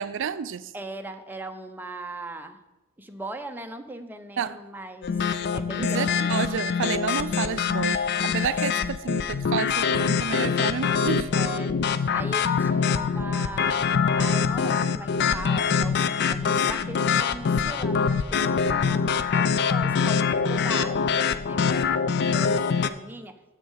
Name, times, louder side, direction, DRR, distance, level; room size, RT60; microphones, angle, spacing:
voice 1, 0.0-0.7 4.4-4.6 5.8-11.3, right 7 dB, 60° right, 0.4 m, -30 dB
voice 2, 0.7-2.6 3.0-5.2 5.5-6.4 8.5-8.7 11.3-13.9 14.2-22.0 22.3-23.3, right 2 dB, 10° right, 0.6 m, -39 dB
sound 1, 5.0-22.9, left 6 dB, 50° left, 0.4 m, -24 dB
7.4 x 6.7 x 6.3 m
head